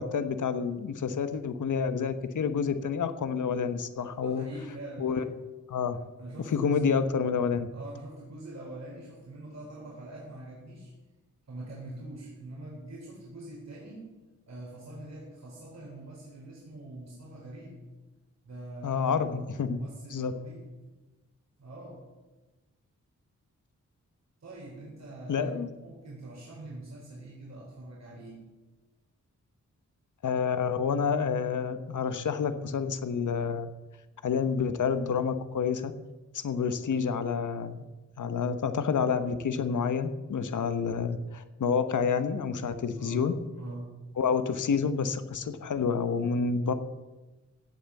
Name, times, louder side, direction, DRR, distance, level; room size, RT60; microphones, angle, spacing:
voice 1, 0.0-4.4 5.0-5.2 5.7-6.0 6.5-7.7 18.8-19.8 20.1-20.3 25.3-25.7 30.2-33.7 34.2-35.9 36.3-37.8 38.2-43.3 44.2-46.7, left 6 dB, 90° left, 10 dB, 1.1 m, -28 dB
voice 2, 3.9-5.3 5.9-6.9 7.7-10.9 11.5-14.1 14.5-17.8 18.4-20.7 21.6-22.1 24.4-28.4 43.0-43.9, right 1 dB, 60° right, -3 dB, 4.0 m, -44 dB
15.5 x 9.1 x 7.2 m, 1.1 s
wide cardioid pair, 160°, 30 cm